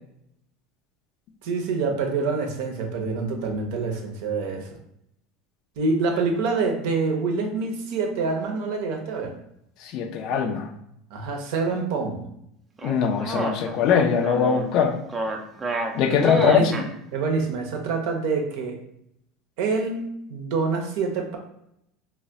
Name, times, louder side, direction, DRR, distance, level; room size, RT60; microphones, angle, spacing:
voice 1, 1.4-4.8 5.8-9.4 11.1-12.3 16.4-16.8 17.1-18.8 19.6-21.4, right 4 dB, 70° right, 3 dB, 0.6 m, -26 dB
voice 2, 9.9-10.7 12.8-14.9 15.9-16.6, left 7 dB, 60° left, 5 dB, 0.4 m, -21 dB
sound 1, 12.8-16.9, right 2 dB, 25° right, 0.4 m, -29 dB
2.2 x 2.1 x 3.8 m, 0.77 s
hypercardioid pair, 85°, 0 cm